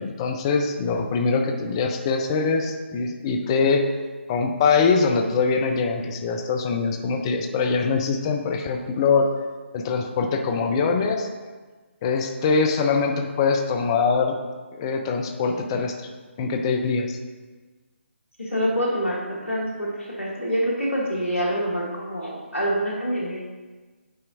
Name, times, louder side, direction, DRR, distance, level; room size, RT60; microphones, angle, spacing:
voice 1, 0.0-3.8 4.3-9.3 9.7-11.3 12.0-14.4 14.8-16.1 16.4-17.2, left 4 dB, 25° left, 5 dB, 0.5 m, -23 dB
voice 2, 18.4-23.5, equal, 85° left, -3 dB, 1.2 m, -26 dB
9.1 x 4.3 x 2.6 m, 1.3 s
figure-of-eight pair, 145°, 7 cm